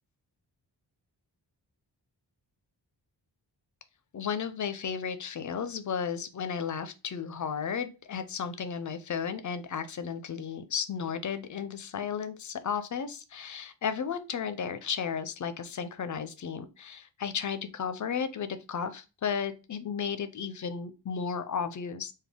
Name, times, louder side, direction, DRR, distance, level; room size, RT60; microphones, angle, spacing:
voice 1, 4.1-22.1, left 7 dB, 45° left, 11 dB, 0.4 m, -34 dB
3.5 x 2.2 x 3.4 m, 0.29 s
wide cardioid pair, 130°, 43 cm